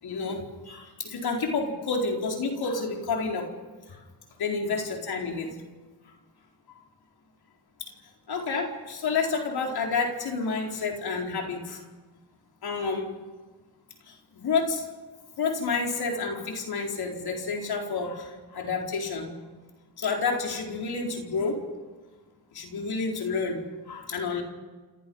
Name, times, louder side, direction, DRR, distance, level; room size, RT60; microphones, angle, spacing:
voice 1, 0.0-3.5 3.9-4.0 4.4-5.6 7.8-7.9 8.3-11.8 12.6-13.1 14.1-14.8 15.4-19.3 20.0-21.6 22.5-23.6 23.9-24.4, left 4 dB, 70° left, 1 dB, 4.6 m, -29 dB
29.0 x 27.5 x 5.6 m, 1.3 s
cardioid pair, 80°, 39 cm